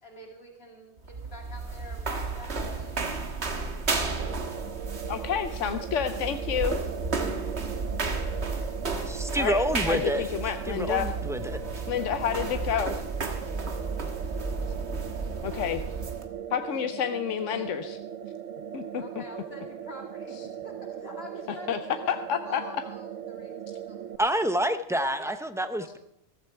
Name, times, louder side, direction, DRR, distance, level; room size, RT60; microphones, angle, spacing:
voice 1, 0.0-3.2 10.9-11.1 12.4-13.1 19.0-22.2 22.4-23.5 23.9-24.4 24.9-26.0, left 2 dB, 55° left, 1 dB, 2.3 m, -47 dB
sound 1, 1.0-16.3, right 3 dB, 60° right, 1.7 m, -33 dB
sound 2, 4.2-24.2, right 9 dB, 80° right, 1.0 m, -39 dB
voice 2, 5.1-6.8 9.3-11.1 11.9-12.9 15.4-15.8 16.5-18.0 18.7-19.0 21.7-21.8 22.1-22.6, left 9 dB, 80° left, 8 dB, 1.0 m, -29 dB
voice 3, 9.1-10.2 10.7-11.6 24.2-26.0, right 1 dB, 5° right, 9 dB, 0.5 m, -28 dB
14.5 x 14.0 x 4.5 m, 0.76 s
omnidirectional pair, 1.3 m